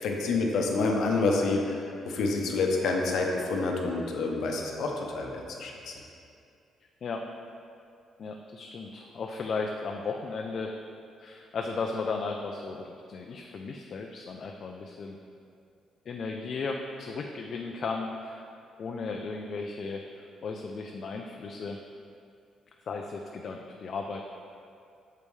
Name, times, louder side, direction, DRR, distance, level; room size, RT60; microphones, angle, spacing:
voice 1, 0.0-5.9, left 3 dB, 75° left, 1 dB, 0.7 m, -28 dB
voice 2, 8.2-10.7 11.2-15.2 16.1-18.4 18.8-21.8 22.9-24.2, left 4 dB, 55° left, 2 dB, 0.4 m, -35 dB
6.6 x 5.3 x 3.2 m, 2.5 s
cardioid pair, 90°, 0 cm